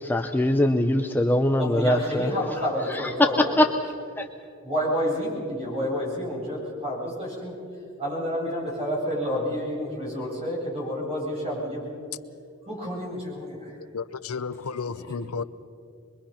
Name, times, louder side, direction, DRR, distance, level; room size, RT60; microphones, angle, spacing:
voice 1, 0.0-2.3 2.9-3.1 3.6-3.7 4.2-4.3, left 1 dB, 10° left, 0.6 m, -22 dB
voice 2, 1.6-3.6 4.6-7.5 8.0-11.8 12.7-13.7, equal, 30° right, 7.8 m, -29 dB
voice 3, 13.9-15.4, left 5 dB, 85° left, 0.7 m, -32 dB
25.5 x 22.5 x 5.8 m
head